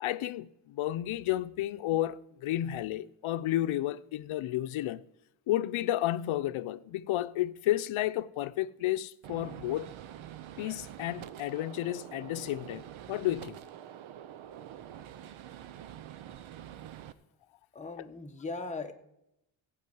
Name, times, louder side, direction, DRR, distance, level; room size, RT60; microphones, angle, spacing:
voice 1, 0.0-5.0 5.5-9.9 10.6-13.6, left 14 dB, 80° left, 0.7 m, -32 dB
Gunshot gunfire, 9.2-17.1, right 11 dB, 80° right, 0.9 m, -46 dB
voice 2, 17.7-18.9, left 3 dB, 15° left, 1.2 m, -38 dB
15.0 x 5.4 x 9.4 m
cardioid pair, 140°, 48 cm